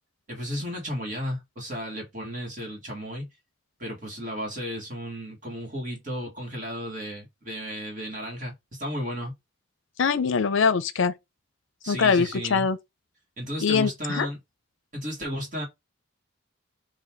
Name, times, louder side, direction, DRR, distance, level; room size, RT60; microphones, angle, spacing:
voice 1, 0.3-3.2 3.8-8.5 8.8-9.3 11.8-12.6 13.4-14.4 14.9-15.6, equal, 40° right, 1.6 m, -33 dB
voice 2, 10.0-11.1 11.9-12.8 13.6-14.3, left 5 dB, 70° left, 0.5 m, -23 dB
4.1 x 2.6 x 4.3 m
head